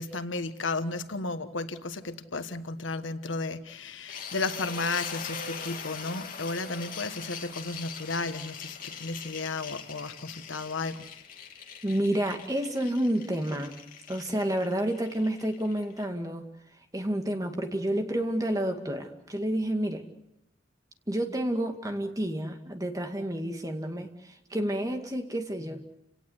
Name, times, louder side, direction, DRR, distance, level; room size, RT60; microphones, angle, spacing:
voice 1, 0.0-11.1, left 3 dB, 90° left, 10 dB, 1.4 m, -34 dB
sound 1, 4.1-16.0, left 6 dB, 45° left, 2.3 m, -42 dB
voice 2, 11.8-13.8 14.1-16.4 16.9-20.0 21.1-25.8, right 1 dB, 20° right, 5 dB, 2.1 m, -30 dB
30.0 x 18.0 x 8.1 m, 0.86 s
head